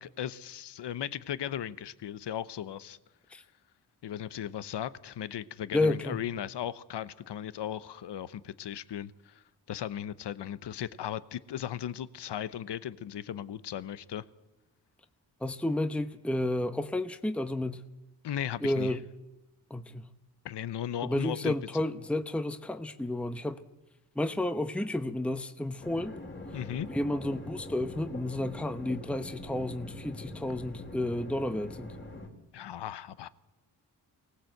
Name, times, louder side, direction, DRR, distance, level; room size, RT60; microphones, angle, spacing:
voice 1, 0.0-3.0 4.0-9.4 9.7-14.2 18.2-18.9 20.4-21.5 26.5-26.9 32.5-33.3, left 10 dB, 75° left, 0.9 m, -37 dB
voice 2, 5.7-6.2 15.4-17.9 18.6-19.1 19.7-20.1 21.0-23.6 24.2-26.2 26.9-31.9, left 1 dB, 5° left, 1.0 m, -31 dB
sound 1, 25.8-32.3, left 1 dB, 25° left, 3.8 m, -43 dB
24.0 x 18.5 x 7.9 m
cardioid pair, 90°, 41 cm